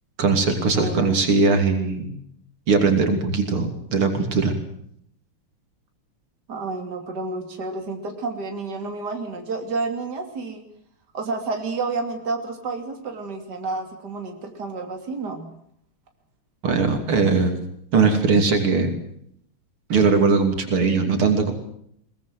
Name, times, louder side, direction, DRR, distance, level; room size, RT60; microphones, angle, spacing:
voice 1, 0.2-2.1 2.7-4.5 16.6-17.5 17.9-18.9 19.9-21.5, right 4 dB, 85° right, 6 dB, 3.8 m, -20 dB
voice 2, 0.8-1.2 6.5-10.6 11.1-15.5, right 3 dB, 50° right, 4 dB, 3.5 m, -30 dB
22.0 x 20.5 x 7.8 m, 0.70 s
omnidirectional pair, 2.3 m